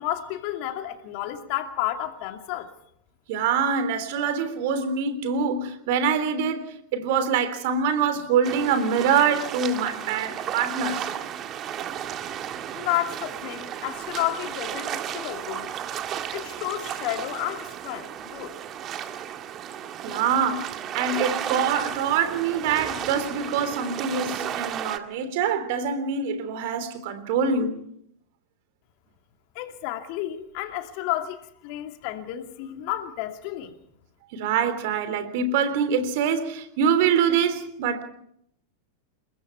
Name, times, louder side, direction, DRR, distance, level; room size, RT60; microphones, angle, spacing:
voice 1, 0.0-2.7 12.7-15.7 16.3-18.5 29.5-33.8, left 13 dB, 45° left, 2.4 m, -31 dB
voice 2, 3.3-6.7 6.9-11.1 20.0-27.8 34.3-38.0, right 6 dB, 50° right, 3.4 m, -25 dB
sound 1, 8.4-25.0, right 9 dB, 30° right, 1.9 m, -33 dB
30.0 x 20.5 x 4.7 m
figure-of-eight pair, 90°, 0 cm